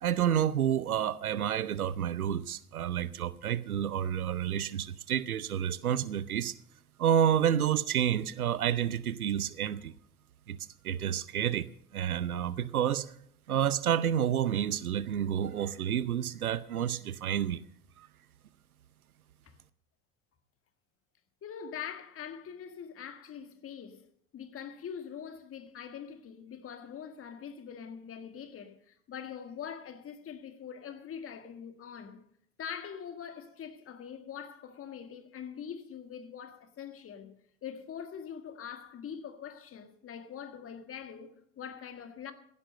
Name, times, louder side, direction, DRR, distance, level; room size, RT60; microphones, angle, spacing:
voice 1, 0.0-6.6 7.0-9.9 10.5-10.6 10.8-11.7 11.9-13.1 13.5-17.6 18.0-18.1, right 9 dB, 80° right, 0.8 m, -29 dB
voice 2, 21.4-24.1 24.3-32.2 32.6-37.4 37.6-42.3, left 8 dB, 30° left, 1.7 m, -43 dB
16.0 x 9.6 x 6.6 m
figure-of-eight pair, 75°, 43 cm